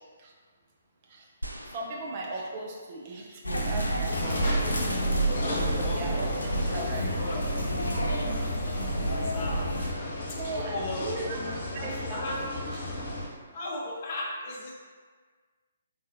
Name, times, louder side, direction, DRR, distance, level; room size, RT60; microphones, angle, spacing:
sound 1, 1.4-2.9 3.7-3.8, right 1 dB, 90° right, 0.4 m, -43 dB
voice 1, 1.7-4.7 5.7-7.1 10.3-11.4 11.7-12.3, right 2 dB, 35° right, -1 dB, 0.8 m, -37 dB
sound 2, 3.4-9.9, right 1 dB, 80° left, 0.7 m, -29 dB
sound 3, 4.1-13.3, left 1 dB, 55° left, 1.2 m, -34 dB
voice 2, 4.3-5.1 5.6-6.5 7.0-9.7 10.3-11.1 11.8-12.4 13.5-14.7, left 1 dB, 30° left, -5 dB, 0.8 m, -38 dB
4.2 x 4.0 x 2.6 m, 1.5 s
figure-of-eight pair, 135°, 0 cm